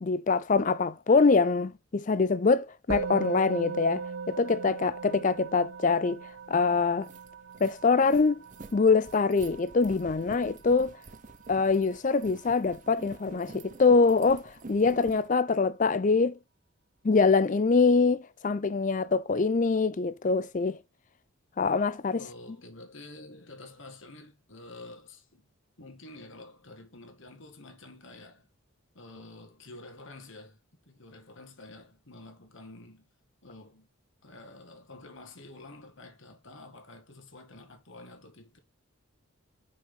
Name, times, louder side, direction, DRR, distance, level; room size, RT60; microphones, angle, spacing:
voice 1, 0.0-6.2 6.5-7.1 7.6-8.4 8.7-10.9 11.5-16.3 17.0-20.8 21.6-22.2, left 4 dB, 35° left, 0.4 m, -24 dB
Musical instrument, 2.9-12.4, right 5 dB, 70° right, 0.8 m, -39 dB
sound 1, 6.4-6.5 6.8-15.3, right 3 dB, 35° right, 0.7 m, -48 dB
voice 2, 22.2-25.5 25.8-28.5 29.0-30.6 30.9-33.1 33.4-33.9 34.2-38.6, left 2 dB, 60° left, 1.8 m, -49 dB
5.9 x 5.3 x 3.7 m
head